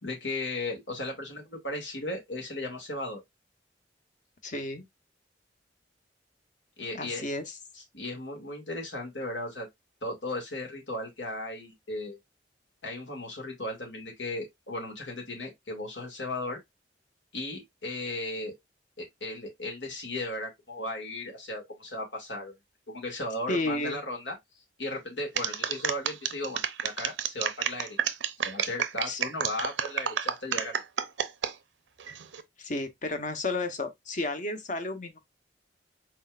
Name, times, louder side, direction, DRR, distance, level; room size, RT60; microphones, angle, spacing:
voice 1, 0.0-3.2 6.8-7.2 7.7-9.7 10.0-12.2 12.8-16.6 17.3-18.6 19.0-22.5 22.9-24.4 24.8-28.0 28.4-30.8, left 2 dB, 85° left, 2.4 m, -36 dB
voice 2, 4.4-4.8 6.9-7.5 23.5-24.0 29.0-29.2 32.6-35.2, left 2 dB, 45° left, 1.0 m, -32 dB
sound 1, 25.4-31.5 32.0-32.4, right 8 dB, 90° right, 0.6 m, -30 dB
4.4 x 4.4 x 2.4 m
head